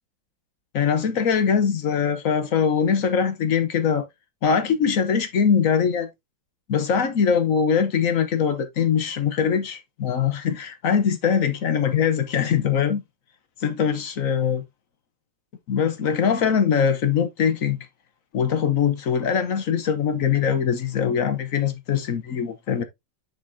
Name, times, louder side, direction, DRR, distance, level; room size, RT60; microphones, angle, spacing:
voice 1, 0.7-4.1 4.4-6.1 6.7-13.0 13.6-14.6 15.7-17.9 18.3-22.8, left 7 dB, 55° left, 1.1 m, -22 dB
7.1 x 5.4 x 2.7 m
omnidirectional pair, 2.1 m